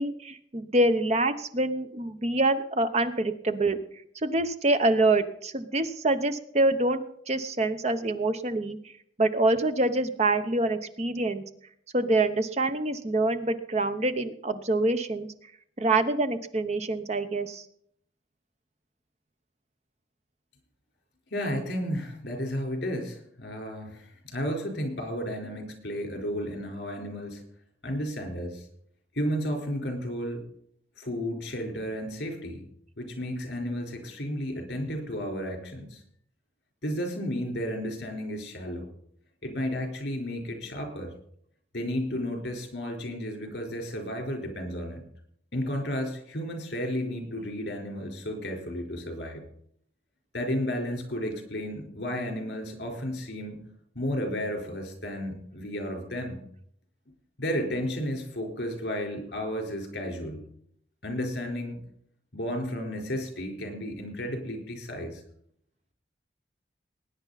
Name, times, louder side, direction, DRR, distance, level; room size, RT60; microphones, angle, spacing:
voice 1, 0.0-3.8 4.2-8.8 9.2-11.4 11.9-15.3 15.8-17.6, right 2 dB, 35° right, 9 dB, 0.9 m, -26 dB
voice 2, 21.3-27.4 27.8-28.7 29.1-30.4 31.0-32.7 33.0-36.0 36.8-38.9 39.4-41.1 41.7-45.0 45.5-49.4 50.3-53.6 53.9-56.4 57.4-60.4 61.0-61.8 62.3-65.2, equal, 65° left, 2 dB, 4.2 m, -33 dB
20.0 x 9.6 x 4.1 m, 0.68 s
head